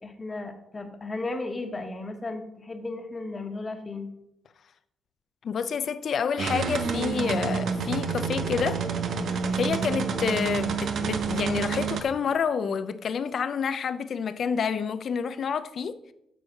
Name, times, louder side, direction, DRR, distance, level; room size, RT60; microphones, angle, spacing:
voice 1, 0.0-4.1, left 2 dB, 25° left, 1.5 m, -35 dB
voice 2, 5.4-8.8 9.3-16.1, left 6 dB, 55° left, 0.6 m, -28 dB
sound 1, 6.4-12.0, right 6 dB, 65° right, 1.0 m, -28 dB
8.2 x 6.2 x 5.8 m
cardioid pair, 90°, 0 cm